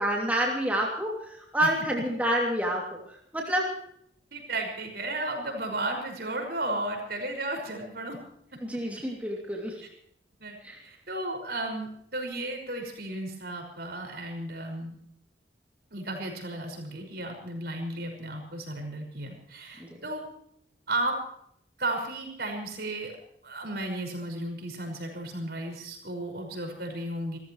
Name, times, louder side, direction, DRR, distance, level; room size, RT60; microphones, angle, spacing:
voice 1, 0.0-2.8 3.1-3.7 8.6-9.8 10.6-10.8 19.8-19.9, right 1 dB, 10° right, -2 dB, 2.8 m, -28 dB
voice 2, 4.3-8.2 8.5-8.8 10.4-10.6 10.8-15.0 15.9-20.2 20.9-21.2 21.8-23.1 23.4-27.4, right 1 dB, 60° right, 3 dB, 5.8 m, -34 dB
29.0 x 14.5 x 3.2 m, 0.69 s
head